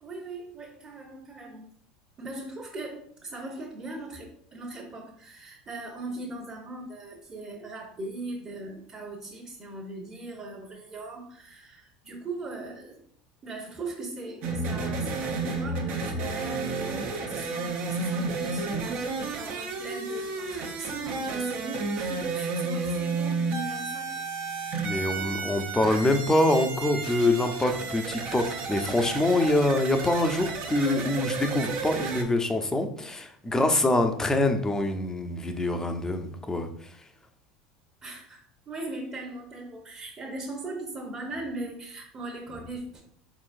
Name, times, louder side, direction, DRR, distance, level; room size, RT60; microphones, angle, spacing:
voice 1, 0.0-1.7 2.2-13.0 13.4-24.2 38.0-43.0, right 2 dB, 30° right, -1 dB, 1.1 m, -39 dB
sound 1, 14.4-32.2, right 4 dB, 55° right, 0.8 m, -32 dB
voice 2, 24.8-36.7, left 2 dB, 15° left, 6 dB, 0.6 m, -25 dB
4.3 x 3.9 x 2.6 m, 0.63 s
hypercardioid pair, 80°, 4 cm